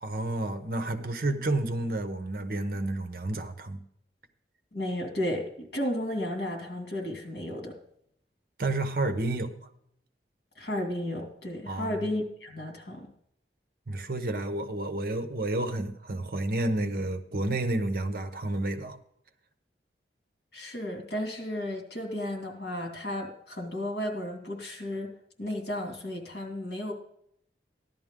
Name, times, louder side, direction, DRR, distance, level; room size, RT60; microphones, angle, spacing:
voice 1, 0.0-3.8 8.6-9.7 11.7-12.0 13.9-19.0, right 2 dB, 55° right, 0.9 m, -30 dB
voice 2, 4.7-7.7 10.6-13.1 20.5-25.1 25.4-26.9, left 1 dB, 65° left, 2.4 m, -33 dB
15.0 x 11.0 x 3.7 m
head